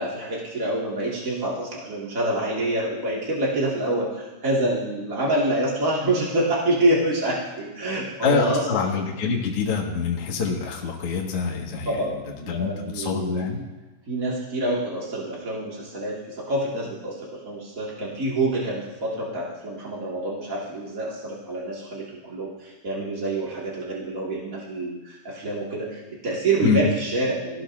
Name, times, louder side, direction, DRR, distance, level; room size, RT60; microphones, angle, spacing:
voice 1, 0.0-8.6 11.8-13.6 14.1-27.6, right 1 dB, 45° right, -5 dB, 1.0 m, -27 dB
voice 2, 8.2-12.0 12.2-13.6 26.6-26.8, left 5 dB, 50° left, -2 dB, 1.7 m, -26 dB
20.5 x 17.5 x 2.6 m, 1.1 s
omnidirectional pair, 5.1 m